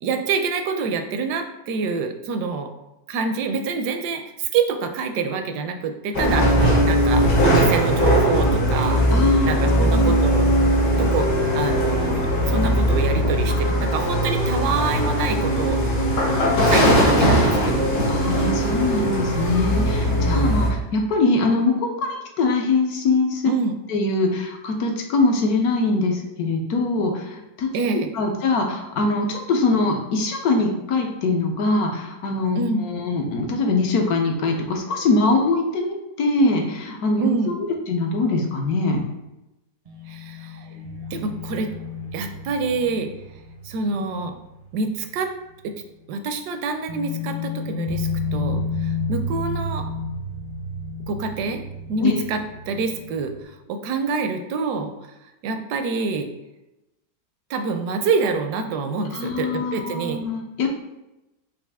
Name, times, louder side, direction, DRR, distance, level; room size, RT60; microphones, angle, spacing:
voice 1, 0.0-2.7 3.1-9.0 9.4-10.5 10.9-11.3 11.5-15.8 16.7-18.1 20.2-20.6 23.5-23.7 27.7-28.1 32.6-32.8 37.2-37.5 40.1-40.6 41.1-41.7 42.1-43.1 43.6-44.3 44.7-45.3 45.6-45.7 46.1-49.8 51.1-51.6 51.9-54.9 55.4-56.3 57.5-60.2, right 4 dB, 80° right, 7 dB, 1.1 m, -26 dB
sound 1, 6.1-20.7, equal, 90° left, 1.6 m, -19 dB
voice 2, 9.1-10.1 18.1-23.5 23.9-39.0 52.0-52.2 59.1-60.7, left 3 dB, 70° left, 2 dB, 1.2 m, -23 dB
sound 2, 39.9-45.3 45.6-45.7 46.9-53.4, left 3 dB, 45° right, 0.4 m, -31 dB
5.6 x 2.5 x 3.4 m, 0.95 s
omnidirectional pair, 1.7 m